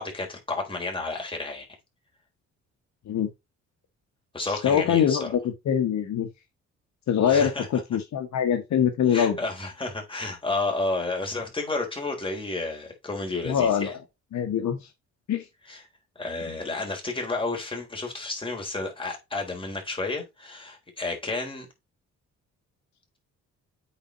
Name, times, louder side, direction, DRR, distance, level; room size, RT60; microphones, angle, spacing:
voice 1, 0.0-1.7 4.3-5.3 7.3-7.7 9.1-13.9 15.7-15.8 16.2-21.7, left 2 dB, 15° left, 3.9 m, -31 dB
voice 2, 4.5-6.3 7.1-9.4 13.4-14.0 14.3-14.9 15.3-15.4, left 8 dB, 65° left, 1.3 m, -24 dB
8.8 x 4.2 x 3.9 m
cardioid pair, 90°, 30 cm